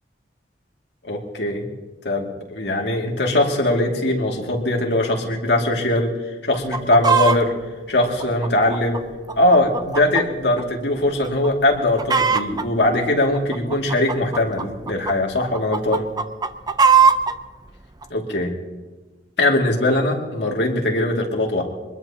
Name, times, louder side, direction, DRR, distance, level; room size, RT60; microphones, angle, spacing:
voice 1, 1.0-1.7 2.0-6.1 6.4-7.5 7.9-9.0 9.4-16.1 18.1-18.5 19.4-21.6, left 1 dB, 70° left, 0 dB, 2.5 m, -21 dB
Chicken rooster, 6.5-7.4 8.0-10.2 10.6-10.7 11.2-11.5 11.7-12.6 13.3-15.1 15.5-17.3 18.0-18.1, right 6 dB, 25° right, 0.6 m, -19 dB
24.0 x 20.5 x 2.9 m, 1.3 s
head